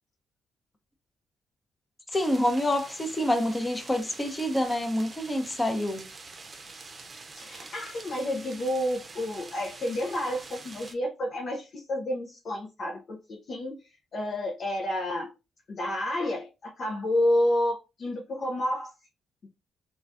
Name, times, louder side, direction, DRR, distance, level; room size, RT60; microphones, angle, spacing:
voice 1, 2.1-6.0, left 1 dB, 20° left, 0.8 m, -27 dB
sound 1, 2.1-10.9, right 3 dB, 40° right, 0.6 m, -46 dB
voice 2, 7.4-13.8 14.1-15.3 15.7-18.9 19.4-19.5, left 1 dB, 60° left, 0.6 m, -30 dB
3.1 x 2.4 x 2.5 m
supercardioid pair, 55°, 0 cm